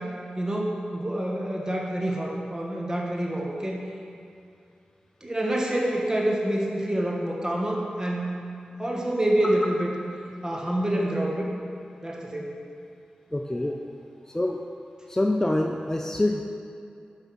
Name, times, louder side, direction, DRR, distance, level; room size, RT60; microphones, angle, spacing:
voice 1, 0.0-3.8 5.2-8.4 8.8-9.9 10.4-11.5 12.0-12.6, right 1 dB, 25° right, -2 dB, 1.1 m, -27 dB
voice 2, 13.3-13.8 14.3-14.6 15.1-16.4, left 1 dB, 20° left, 2 dB, 0.4 m, -25 dB
5.5 x 3.5 x 5.7 m, 2.5 s
cardioid pair, 45°, 3 cm